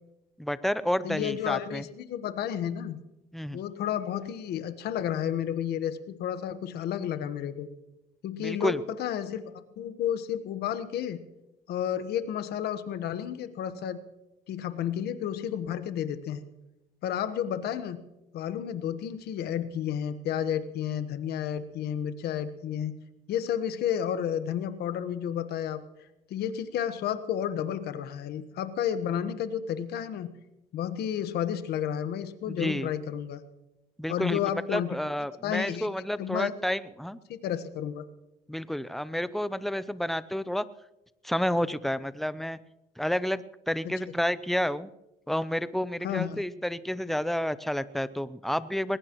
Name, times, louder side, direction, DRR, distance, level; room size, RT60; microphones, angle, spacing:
voice 1, 0.4-1.8 3.3-3.6 8.4-8.8 32.5-32.9 34.0-34.4 34.7-37.2 38.5-40.7 41.2-42.6 43.0-44.9 45.3-49.0, equal, ahead, 15 dB, 0.6 m, -30 dB
voice 2, 1.0-3.0 3.5-7.7 8.2-9.4 9.8-11.2 11.7-14.0 14.5-16.4 17.0-18.0 18.3-22.9 23.3-25.8 26.3-30.3 30.7-33.4 34.1-35.0 35.4-35.9 36.2-36.5 37.3-38.0 46.0-46.4, left 9 dB, 70° left, 11 dB, 1.3 m, -31 dB
21.5 x 19.5 x 3.1 m, 0.97 s
cardioid pair, 110°, 17 cm